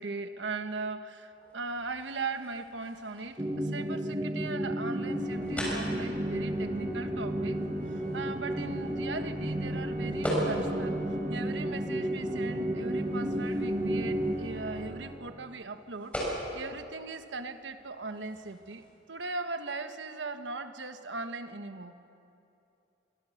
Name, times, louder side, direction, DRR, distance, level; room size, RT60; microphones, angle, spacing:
voice 1, 0.0-7.6 7.9-11.0 11.3-18.8 19.1-21.9, right 3 dB, 85° right, 8 dB, 1.3 m, -39 dB
sound 1, 1.3-19.0, equal, 10° left, 7.2 m, -42 dB
sound 2, 3.4-14.4, right 1 dB, 20° right, 1.3 m, -32 dB
Organ, 4.9-15.7, right 1 dB, 45° right, 3.1 m, -43 dB
24.5 x 24.0 x 6.5 m, 2.7 s
head